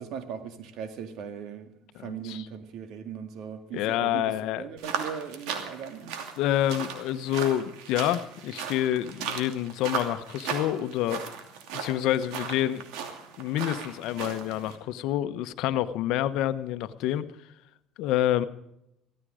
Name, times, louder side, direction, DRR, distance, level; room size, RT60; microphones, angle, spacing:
voice 1, 0.0-6.2, right 7 dB, 65° right, 2.1 m, -39 dB
voice 2, 2.0-2.4 3.7-4.6 6.4-11.2 11.7-12.8 13.4-17.3 18.0-18.4, left 12 dB, 75° left, 1.0 m, -28 dB
sound 1, 4.8-14.8, right 6 dB, 80° right, 2.7 m, -37 dB
16.0 x 14.5 x 5.0 m
cardioid pair, 110°, 0 cm